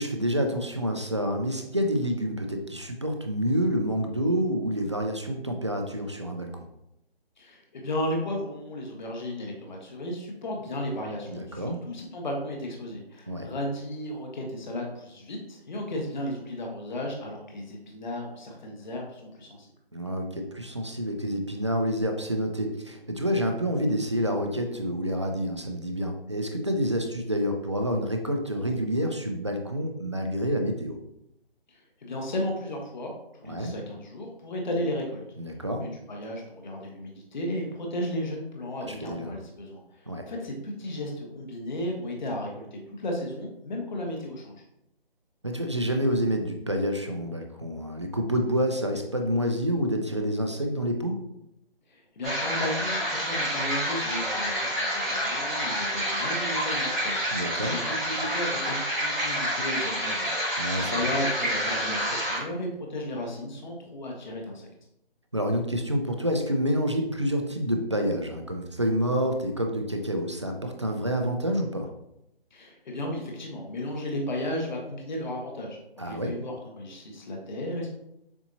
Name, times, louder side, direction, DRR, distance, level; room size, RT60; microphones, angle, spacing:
voice 1, 0.0-6.6 11.3-11.8 13.3-13.5 19.9-31.0 33.4-33.7 35.4-35.8 38.8-39.3 40.1-40.2 45.4-51.2 57.3-57.8 60.6-61.1 65.3-71.9 76.0-76.3, equal, 30° right, 3 dB, 0.4 m, -28 dB
voice 2, 7.4-19.7 31.7-33.1 33.4-35.2 35.8-44.6 51.9-60.3 60.8-64.7 72.5-75.8 76.0-77.9, left 1 dB, 50° left, 0 dB, 1.1 m, -34 dB
sound 1, 52.2-62.4, equal, ahead, 1.1 m, -28 dB
7.1 x 2.7 x 2.6 m, 0.81 s
hypercardioid pair, 165°, 30 cm